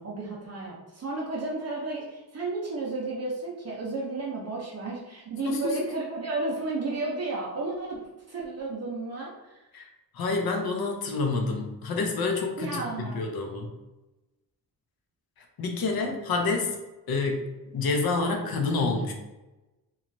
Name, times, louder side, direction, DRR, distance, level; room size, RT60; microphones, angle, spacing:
voice 1, 0.0-8.0 8.3-9.3 12.6-13.2, right 2 dB, 45° right, -4 dB, 0.5 m, -33 dB
voice 2, 5.4-5.8 9.7-9.9 10.1-13.7 15.6-16.8 17.1-17.5 17.7-19.1, left 3 dB, 70° left, 3 dB, 0.6 m, -28 dB
2.9 x 2.3 x 2.5 m, 1.0 s
wide cardioid pair, 170°, 38 cm